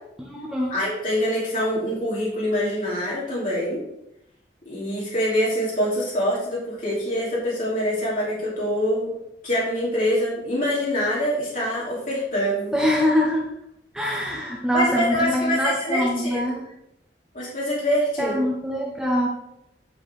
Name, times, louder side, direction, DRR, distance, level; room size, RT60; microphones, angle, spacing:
voice 1, 0.2-0.8 12.7-13.5 13.9-16.6 18.2-19.3, equal, 5° right, -2 dB, 0.8 m, -24 dB
voice 2, 0.7-3.8 4.7-9.1 9.4-12.7 14.7-16.4 17.3-18.4, equal, 50° left, -7 dB, 2.6 m, -25 dB
10.5 x 5.2 x 3.4 m, 0.84 s
head